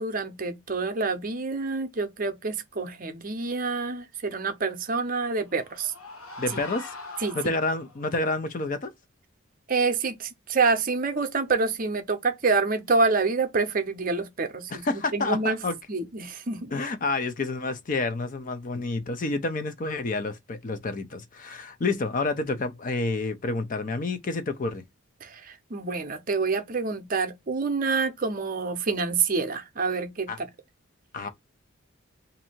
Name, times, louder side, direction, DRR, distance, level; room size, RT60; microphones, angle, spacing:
voice 1, 0.0-5.9 7.2-7.5 9.7-14.8 15.1-15.6 15.9-16.7 25.2-30.5, right 4 dB, 40° right, 0.6 m, -27 dB
sound 1, 5.1-8.1, left 2 dB, 80° left, 1.0 m, -42 dB
voice 2, 6.4-8.9 14.7-15.8 16.7-24.8 30.3-30.4 31.1-31.3, left 3 dB, 40° left, 0.5 m, -29 dB
2.7 x 2.6 x 4.2 m
head